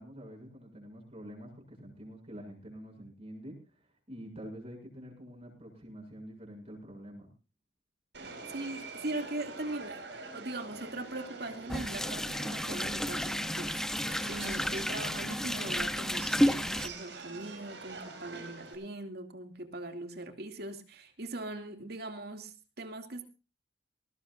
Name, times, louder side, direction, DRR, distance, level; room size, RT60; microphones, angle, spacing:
voice 1, 0.0-3.6 4.1-7.3, equal, 35° right, 1 dB, 7.3 m, -47 dB
Subway metro underground, 8.1-18.7, right 3 dB, 90° right, 4.9 m, -46 dB
voice 2, 8.5-10.0 10.3-23.2, right 2 dB, 65° right, 6 dB, 2.6 m, -40 dB
sound 1, 11.7-16.9, equal, 5° left, 0.8 m, -31 dB
19.5 x 19.0 x 2.6 m, 0.31 s
head